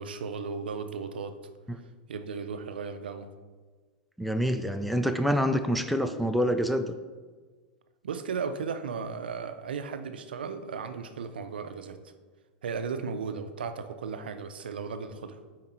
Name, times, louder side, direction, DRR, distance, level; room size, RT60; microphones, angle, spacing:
voice 1, 0.0-1.5 2.1-3.3 8.0-12.0 12.6-15.4, right 5 dB, 90° right, 9 dB, 0.5 m, -35 dB
voice 2, 4.2-7.0, equal, ahead, 7 dB, 0.4 m, -26 dB
5.9 x 4.5 x 4.2 m, 1.4 s
hypercardioid pair, 105°, 5 cm